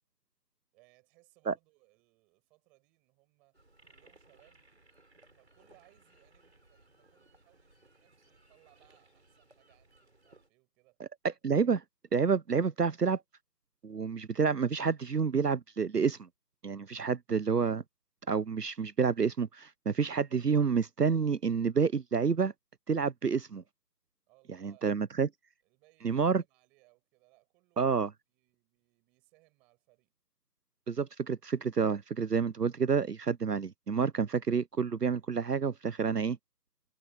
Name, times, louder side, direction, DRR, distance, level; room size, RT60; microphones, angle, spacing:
voice 1, 0.7-4.6 5.3-11.0 17.0-17.3 24.3-25.1 25.6-28.0 28.3-30.1, right 24 dB, ahead, 6.8 m, -67 dB
sound 1, 3.5-10.5, right 2 dB, 40° right, 6.8 m, -63 dB
voice 2, 11.4-11.8 12.1-13.2 13.8-16.3 16.6-17.8 18.3-22.5 22.9-23.6 24.6-25.3 26.0-26.4 27.8-28.1 30.9-36.4, right 5 dB, 70° right, 0.8 m, -29 dB
figure-of-eight pair, 175°, 50 cm